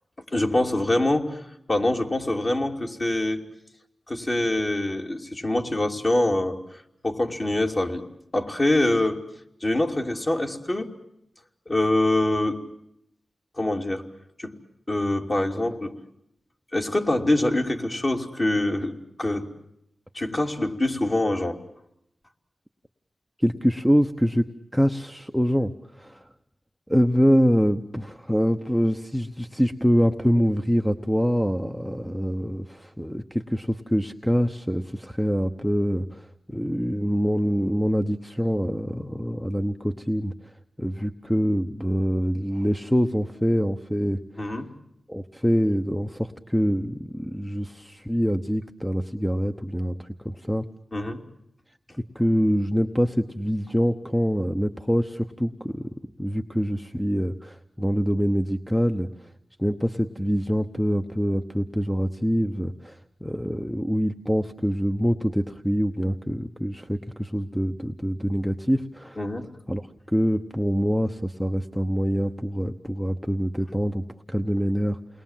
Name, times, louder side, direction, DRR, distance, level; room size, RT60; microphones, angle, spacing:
voice 1, 0.3-1.4 1.7-3.4 4.1-8.1 8.3-9.2 9.6-10.9 11.7-12.6 13.6-14.0 14.4-14.5 14.9-16.0 16.7-19.5 20.1-21.6 44.4-44.7 50.9-51.2 69.2-69.5, left 1 dB, 35° left, 2 dB, 3.1 m, -24 dB
voice 2, 23.4-24.5 24.7-26.3 26.9-40.3 40.8-44.2 45.1-50.7 52.1-59.1 59.6-69.2 69.7-75.0, equal, ahead, 7 dB, 1.0 m, -25 dB
29.0 x 21.0 x 7.5 m, 0.77 s
wide cardioid pair, 80°, 0 cm